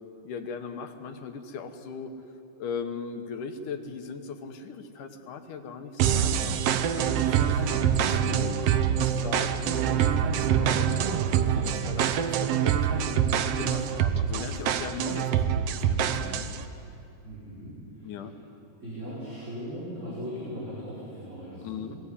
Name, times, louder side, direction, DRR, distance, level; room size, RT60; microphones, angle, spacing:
voice 1, 0.2-2.1 2.6-8.7 9.0-13.2 13.6-16.6 18.0-18.3 21.6-22.0, left 5 dB, 80° left, 6 dB, 2.8 m, -39 dB
sound 1, 6.0-16.6, right 8 dB, 75° right, 1.5 m, -25 dB
voice 2, 17.2-18.3 18.8-21.9, equal, 20° right, -9 dB, 5.6 m, -39 dB
21.0 x 17.0 x 9.9 m, 2.7 s
omnidirectional pair, 3.6 m